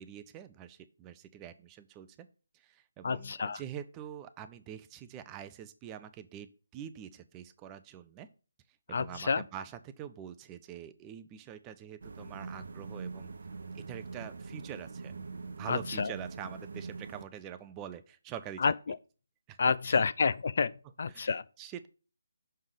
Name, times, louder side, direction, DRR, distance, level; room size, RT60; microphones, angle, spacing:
voice 1, 0.0-2.3 2.5-8.3 8.9-13.3 13.7-15.1 15.5-18.7 19.5-19.6 19.8-20.0 21.1-21.9, right 9 dB, 15° right, 0.5 m, -45 dB
voice 2, 3.0-3.6 8.9-9.4 15.7-16.1 18.6-19.0 19.6-21.4, left 5 dB, 50° left, 0.3 m, -29 dB
sound 1, 12.0-17.2, right 4 dB, 60° right, 0.6 m, -43 dB
6.5 x 3.6 x 6.2 m
figure-of-eight pair, 150°, 0 cm